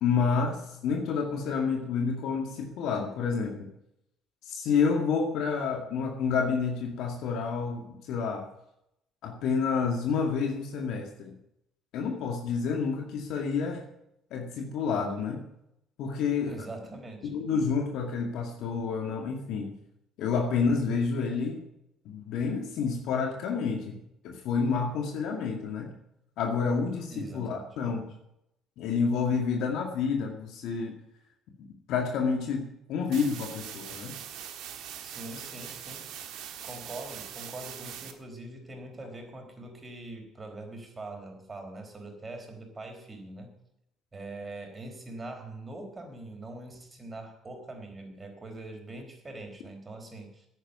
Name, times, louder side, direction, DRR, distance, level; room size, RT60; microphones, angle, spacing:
voice 1, 0.0-3.7 4.5-8.5 9.2-11.3 11.9-13.8 14.3-15.4 16.0-16.7 17.2-19.7 20.2-21.6 22.1-24.0 24.2-25.9 26.4-28.0 28.8-30.9 31.9-34.1, left 5 dB, 70° left, 3 dB, 2.1 m, -29 dB
voice 2, 16.5-17.3 27.1-27.7 35.0-36.1 36.6-43.5 44.1-50.5, right 2 dB, 30° right, 4 dB, 4.2 m, -43 dB
sound 1, 33.1-38.1, right 9 dB, 70° right, 1.5 m, -42 dB
10.0 x 9.2 x 9.3 m, 0.79 s
hypercardioid pair, 60°, 0 cm